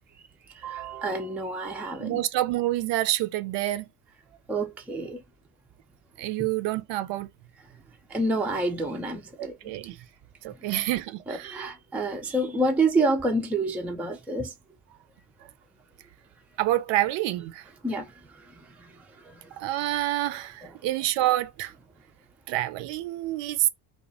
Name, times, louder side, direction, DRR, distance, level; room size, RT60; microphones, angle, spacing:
voice 1, 0.6-2.2 4.5-5.2 6.4-6.5 8.1-9.5 10.7-10.8 11.3-14.5 17.8-18.1 19.3-19.4, right 2 dB, 5° right, 0.3 m, -28 dB
voice 2, 2.0-3.9 6.2-7.3 9.4-10.0 10.4-11.6 16.6-17.6 19.6-21.7 22.5-23.7, right 15 dB, 60° right, 0.5 m, -27 dB
2.4 x 2.1 x 2.6 m
hypercardioid pair, 60°, 49 cm